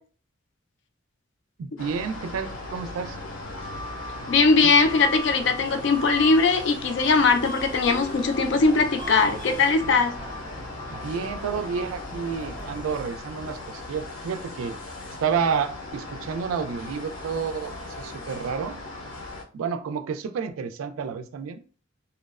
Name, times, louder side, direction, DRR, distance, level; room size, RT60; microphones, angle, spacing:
voice 1, 1.6-3.2 10.9-14.7 15.2-18.8 19.5-21.6, right 6 dB, 90° right, 0.3 m, -30 dB
sound 1, 1.8-19.4, left 2 dB, 80° left, 0.7 m, -37 dB
voice 2, 4.3-10.2, left 4 dB, 60° left, 0.3 m, -20 dB
Subway metro underground, 7.0-13.0, right 1 dB, 20° right, 0.6 m, -41 dB
2.8 x 2.0 x 2.3 m
head